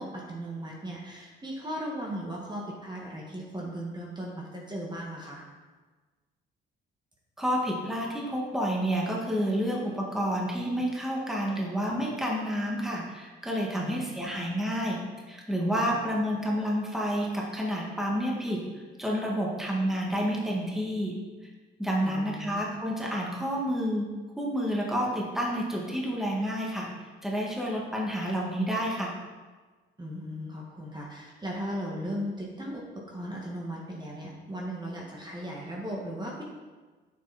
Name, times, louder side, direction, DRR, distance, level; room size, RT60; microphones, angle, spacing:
voice 1, 0.0-5.4 13.8-14.3 15.7-16.0 22.0-22.8 30.0-36.4, equal, 20° right, -3 dB, 1.8 m, -37 dB
voice 2, 7.4-15.0 15.3-18.6 19.0-21.1 21.8-24.1 24.4-26.9 27.2-29.1, equal, ahead, -3 dB, 1.9 m, -29 dB
9.1 x 7.0 x 4.3 m, 1.3 s
cardioid pair, 90°, 20 cm